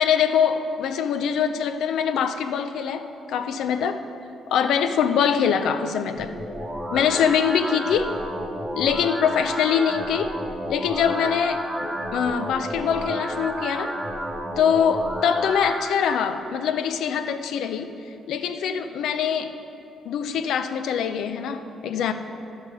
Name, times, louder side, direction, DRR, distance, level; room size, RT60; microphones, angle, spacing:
voice 1, 0.0-4.0 4.5-6.3 6.9-8.2 8.8-10.4 10.7-13.9 14.6-19.5 20.0-22.1, left 7 dB, 80° left, 9 dB, 0.6 m, -23 dB
sound 1, 6.2-16.2, equal, 10° right, 1.2 m, -31 dB
12.0 x 5.6 x 6.3 m, 2.8 s
cardioid pair, 90°, 0 cm